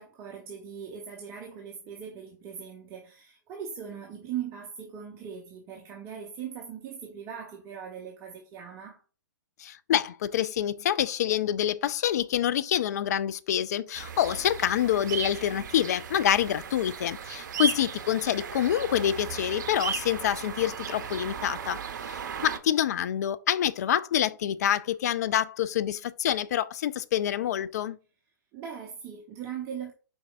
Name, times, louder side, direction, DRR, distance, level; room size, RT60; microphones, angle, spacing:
voice 1, 0.0-9.0 28.5-29.9, right 8 dB, 25° right, 0.7 m, -40 dB
voice 2, 9.6-21.8 22.1-28.0, left 10 dB, 50° left, 0.4 m, -27 dB
sound 1, 13.9-22.6, right 7 dB, 60° right, 0.6 m, -36 dB
4.6 x 4.4 x 2.5 m
figure-of-eight pair, 120°, 11 cm